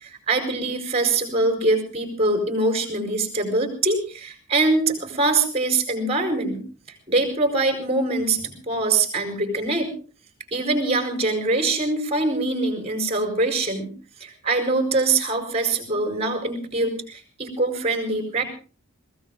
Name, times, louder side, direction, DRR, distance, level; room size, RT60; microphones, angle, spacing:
voice 1, 0.0-6.6 7.1-9.9 10.5-13.9 14.2-18.4, right 2 dB, 30° right, 6 dB, 4.8 m, -23 dB
22.0 x 16.5 x 3.8 m, 0.37 s
head